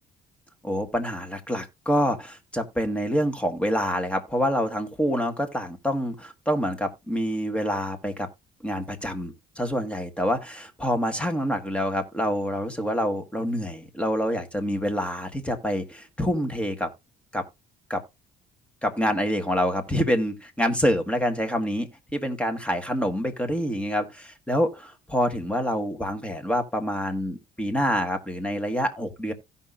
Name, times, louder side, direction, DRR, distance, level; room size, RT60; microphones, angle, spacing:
voice 1, 0.6-8.3 8.6-16.9 17.3-17.5 17.9-18.0 18.8-29.3, equal, 5° left, 1.6 m, -26 dB
16.0 x 5.6 x 2.5 m
cardioid pair, 110°, 17 cm